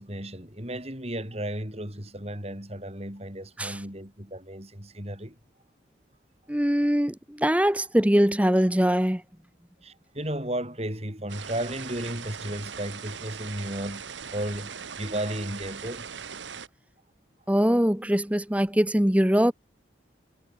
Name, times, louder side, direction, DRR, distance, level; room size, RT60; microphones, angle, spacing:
voice 1, 0.0-5.4 9.8-14.0 14.3-16.1, right 1 dB, 35° right, 7.4 m, -34 dB
voice 2, 6.5-9.2 17.5-19.5, equal, 5° right, 1.0 m, -22 dB
sound 1, 11.3-16.7, right 6 dB, 80° right, 1.6 m, -40 dB
head